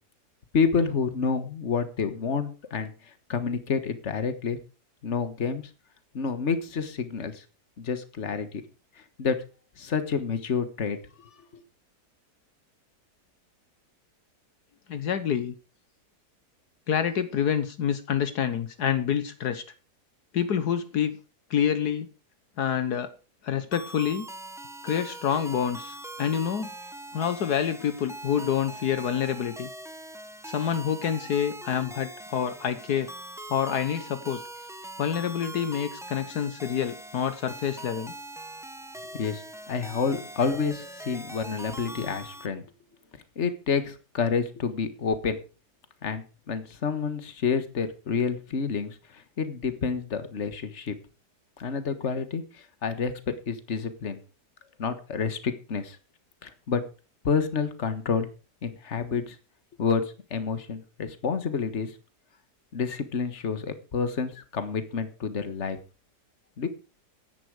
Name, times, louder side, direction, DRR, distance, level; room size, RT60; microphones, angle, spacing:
voice 1, 0.5-2.9 3.3-4.6 5.0-5.7 6.1-7.4 7.8-8.6 9.2-9.4 9.8-11.6 39.1-42.6 43.4-45.4 46.0-51.0 51.6-54.2 54.8-56.0 56.4-56.8 57.2-58.3 58.6-59.4 59.8-60.0 60.3-61.9 62.7-65.8 66.6-66.7, left 5 dB, 45° left, 11 dB, 1.8 m, -29 dB
voice 2, 14.9-15.5 16.9-19.6 20.3-21.1 21.5-22.1 22.6-23.1 23.4-24.2 24.8-26.7 27.1-29.7 30.4-33.1 33.5-34.4 35.0-38.1, left 8 dB, 75° left, 11 dB, 1.6 m, -27 dB
sound 1, 23.7-42.5, right 1 dB, 5° right, 0.5 m, -42 dB
15.5 x 10.5 x 4.9 m, 0.35 s
omnidirectional pair, 1.8 m